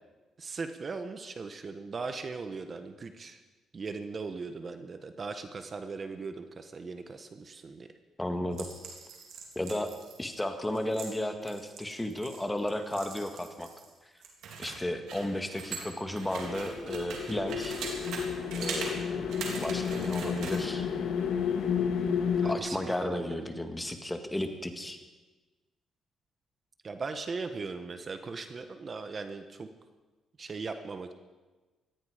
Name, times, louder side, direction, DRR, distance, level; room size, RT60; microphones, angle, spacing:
voice 1, 0.4-3.4 3.7-7.9 18.9-19.4 22.4-23.4 26.8-29.7 30.4-31.1, right 4 dB, 40° right, 8 dB, 1.2 m, -39 dB
voice 2, 8.2-8.7 9.6-9.9 10.2-13.7 14.6-17.8 18.6-18.9 19.6-20.9 22.4-25.0, left 1 dB, 10° left, 6 dB, 1.9 m, -33 dB
sound 1, 8.5-13.9 14.2-18.2 18.5-18.9 19.3-20.6, right 5 dB, 80° right, 3.6 m, -41 dB
sound 2, 16.3-22.6, left 7 dB, 75° left, 1.9 m, -31 dB
18.5 x 14.5 x 5.1 m, 1.2 s
cardioid pair, 90°, 0 cm